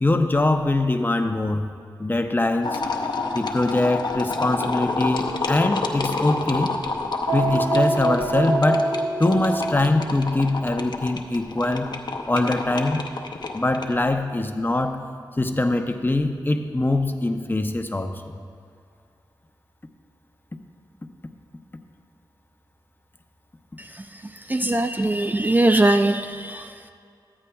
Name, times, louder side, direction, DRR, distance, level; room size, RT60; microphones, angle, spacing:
voice 1, 0.0-1.7 2.0-2.8 3.3-6.7 7.3-8.9 9.2-11.9 12.3-13.0 13.5-15.0 15.4-18.4, left 2 dB, 25° left, 6 dB, 0.6 m, -23 dB
sound 1, 2.6-13.9, left 3 dB, 65° left, 0.7 m, -29 dB
sound 2, 7.3-10.1, right 2 dB, 85° right, 0.8 m, -24 dB
voice 2, 24.5-26.9, right 2 dB, 20° right, 7 dB, 0.3 m, -21 dB
14.0 x 9.7 x 2.3 m, 2.4 s
cardioid pair, 55°, 8 cm